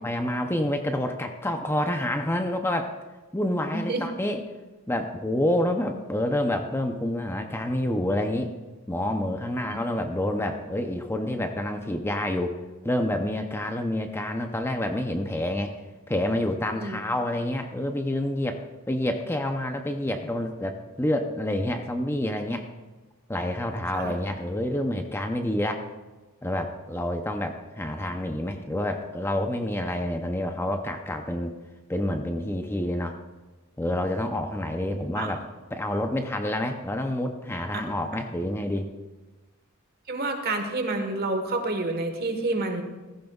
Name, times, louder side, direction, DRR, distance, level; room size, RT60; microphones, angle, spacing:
voice 1, 0.0-2.9 3.3-4.4 4.9-8.5 8.9-12.6 12.8-15.8 16.1-22.7 23.3-25.8 26.4-31.5 31.9-33.2 33.8-35.5 35.7-38.9, left 1 dB, 10° left, 5 dB, 0.6 m, -28 dB
voice 2, 3.7-4.0 9.7-9.8 16.8-17.0 23.9-24.2 35.2-35.3 37.7-37.8 40.1-42.8, right 2 dB, 50° right, 5 dB, 1.4 m, -28 dB
15.5 x 14.5 x 2.4 m, 1.2 s
head